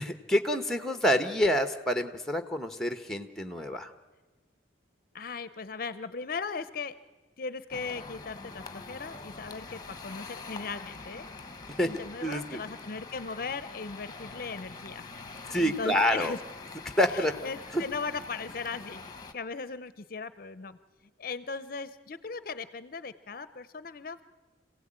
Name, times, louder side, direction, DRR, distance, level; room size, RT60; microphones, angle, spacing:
voice 1, 0.0-3.9 11.8-11.9 12.2-12.6 15.5-16.4 17.0-17.3 17.7-17.8, equal, ahead, 7 dB, 1.0 m, -27 dB
voice 2, 5.1-6.9 7.4-11.3 11.8-16.4 17.1-19.0 19.3-20.8 21.2-24.2, left 4 dB, 50° left, 14 dB, 0.6 m, -38 dB
sound 1, 7.7-19.3, left 3 dB, 20° left, 1.2 m, -44 dB
26.5 x 16.5 x 8.8 m, 1.3 s
head